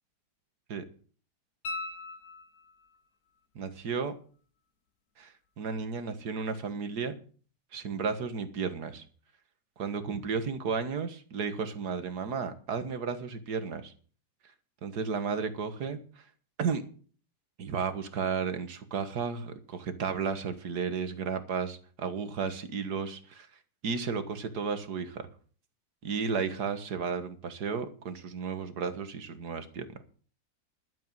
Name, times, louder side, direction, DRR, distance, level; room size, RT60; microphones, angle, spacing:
sound 1, 1.6-3.0 5.8-5.9, left 3 dB, 60° left, 1.7 m, -39 dB
voice 1, 3.6-4.1 5.2-7.1 7.7-9.0 9.8-13.9 14.8-16.0 16.6-16.8 17.6-23.5 23.8-25.2 26.0-29.9, right 5 dB, 70° right, 10 dB, 2.0 m, -33 dB
11.5 x 9.4 x 7.4 m, 0.42 s
omnidirectional pair, 1.8 m